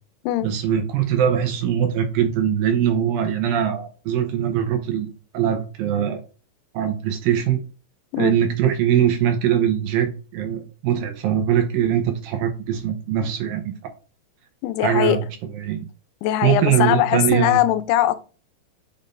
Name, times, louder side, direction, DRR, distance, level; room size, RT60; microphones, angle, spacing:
voice 1, 0.4-5.1 5.3-6.2 6.7-7.6 8.2-13.9 14.8-15.9 16.4-17.7, right 9 dB, 80° right, 2.2 m, -22 dB
voice 2, 14.6-15.2 16.2-18.2, left 14 dB, 80° left, 2.6 m, -20 dB
6.9 x 5.3 x 2.6 m
omnidirectional pair, 4.9 m